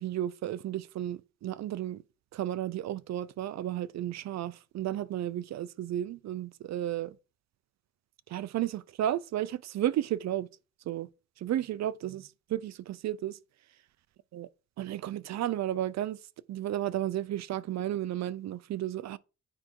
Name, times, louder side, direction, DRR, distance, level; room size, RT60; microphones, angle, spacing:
voice 1, 0.0-2.0 2.3-7.2 8.3-10.5 10.9-11.1 11.4-13.4 14.3-14.5 14.8-16.2 16.5-19.2, right 12 dB, 60° right, 0.6 m, -33 dB
8.7 x 4.9 x 4.6 m
cardioid pair, 90°, 30 cm